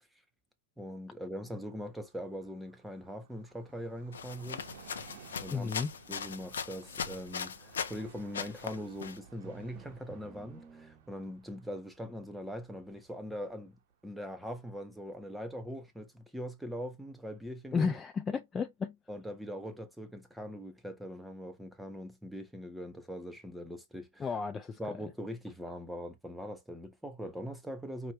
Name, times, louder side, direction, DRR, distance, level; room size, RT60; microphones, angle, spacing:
voice 1, 0.8-4.7 5.4-5.7 6.1-17.9 19.1-24.3 24.8-28.1, equal, ahead, 1.1 m, -42 dB
Train, 1.6-14.9 15.2-15.3, right 7 dB, 55° right, 0.9 m, -58 dB
sound 1, 4.1-8.0 8.3-9.2, left 7 dB, 75° left, 0.8 m, -39 dB
voice 2, 5.5-5.9 17.7-19.0 24.2-24.8, left 5 dB, 15° left, 0.5 m, -32 dB
Drum, 9.4-11.5, right 5 dB, 20° right, 0.8 m, -52 dB
5.3 x 3.1 x 3.1 m
hypercardioid pair, 115°, 0 cm